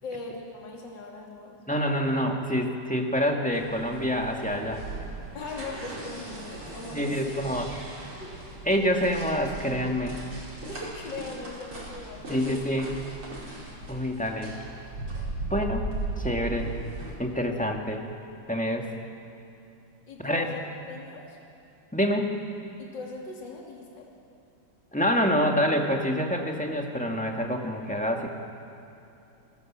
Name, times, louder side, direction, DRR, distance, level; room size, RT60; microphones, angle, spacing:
voice 1, 0.0-1.6 5.3-7.3 8.2-8.3 10.7-12.7 20.1-20.6 20.9-21.4 22.8-24.1, left 3 dB, 60° left, -1 dB, 3.4 m, -40 dB
voice 2, 1.7-4.8 6.9-7.9 8.7-10.2 12.3-12.9 13.9-14.5 15.4-15.9 16.2-16.7 17.2-18.0 18.5-18.9 20.2-20.5 21.9-22.4 24.9-28.3, equal, 5° left, 1 dB, 1.8 m, -27 dB
sound 1, 3.5-17.1, right 2 dB, 85° right, 5.8 m, -38 dB
27.5 x 18.0 x 7.5 m, 2.8 s
omnidirectional pair, 2.2 m